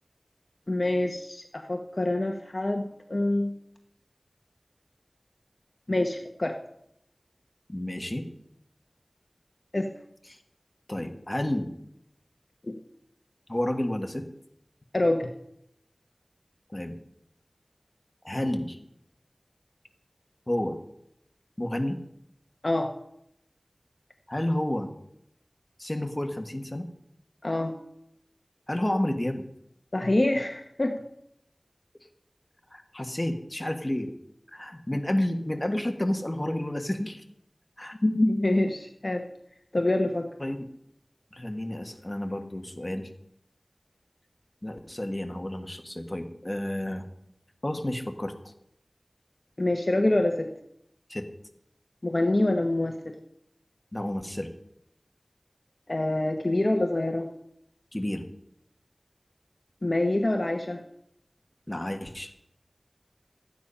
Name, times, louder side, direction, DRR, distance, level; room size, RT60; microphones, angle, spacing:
voice 1, 0.7-3.5 5.9-6.5 9.7-9.9 12.6-12.7 14.9-15.3 22.6-22.9 27.4-27.7 29.9-31.0 38.0-39.2 39.7-40.3 49.6-50.5 52.0-53.1 55.9-57.3 59.8-60.8, left 1 dB, 55° left, 4 dB, 1.0 m, -26 dB
voice 2, 7.7-8.3 10.9-11.7 13.5-14.3 16.7-16.9 18.2-18.8 20.5-20.8 21.6-22.0 24.3-24.9 25.8-26.9 28.7-29.4 32.7-34.1 34.5-37.2 37.8-37.9 40.4-40.7 41.3-43.1 44.6-47.1 47.6-48.3 51.1-51.3 53.9-54.5 57.9-58.2 61.7-62.3, left 1 dB, 30° left, 4 dB, 1.5 m, -30 dB
13.0 x 9.4 x 5.6 m, 0.76 s
wide cardioid pair, 45°, 0 cm